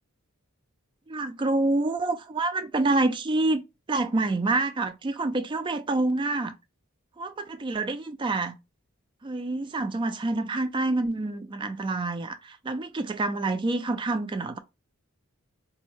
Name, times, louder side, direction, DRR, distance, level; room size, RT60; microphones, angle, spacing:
voice 1, 1.1-3.6 3.9-6.5 7.2-8.6 9.2-14.6, right 2 dB, 20° right, 0.3 m, -27 dB
4.1 x 2.2 x 3.0 m
head